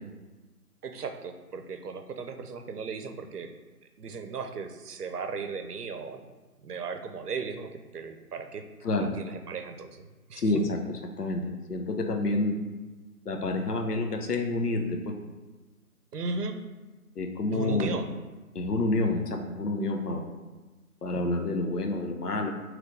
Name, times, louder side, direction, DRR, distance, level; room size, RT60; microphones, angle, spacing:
voice 1, 0.8-3.5 4.0-6.3 6.6-8.7 8.9-10.5 16.1-16.6 17.5-18.1, right 4 dB, 90° right, 7 dB, 0.6 m, -36 dB
voice 2, 10.4-11.4 11.7-12.5 13.3-15.1 17.2-17.9 18.5-20.3 21.0-22.5, left 2 dB, 85° left, 4 dB, 0.8 m, -28 dB
3.8 x 3.2 x 3.2 m, 1.2 s
figure-of-eight pair, 165°, 45 cm